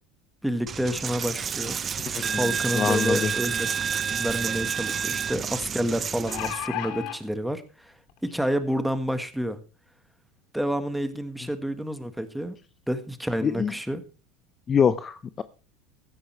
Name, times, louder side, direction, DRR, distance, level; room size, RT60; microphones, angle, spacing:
voice 1, 0.4-1.8 2.3-7.9 8.2-9.6 10.5-12.6 12.9-14.0, equal, ahead, 1.7 m, -29 dB
Coin (dropping), 0.7-6.7, right 7 dB, 25° right, 0.5 m, -29 dB
voice 2, 2.1-3.3 13.4-13.7 14.7-15.4, left 7 dB, 25° left, 0.6 m, -25 dB
sound 1, 3.8-3.9 4.3-4.4 6.0-7.2 8.1-8.2 8.6-8.7, left 11 dB, 60° left, 2.7 m, -33 dB
16.0 x 13.0 x 3.4 m
supercardioid pair, 140°, 0 cm